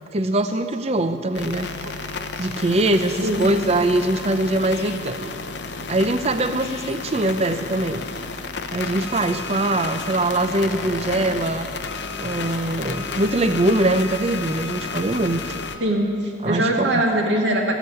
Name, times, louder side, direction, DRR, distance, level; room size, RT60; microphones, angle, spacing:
voice 1, 0.1-1.7 2.4-5.3 5.9-8.0 8.7-11.7 12.2-15.5 16.4-17.0, right 1 dB, 30° right, 9 dB, 0.6 m, -22 dB
sound 1, 1.3-15.8, left 4 dB, 60° left, 0.8 m, -32 dB
voice 2, 15.8-17.7, right 1 dB, 65° right, 1 dB, 2.1 m, -22 dB
15.0 x 8.1 x 9.4 m, 2.4 s
head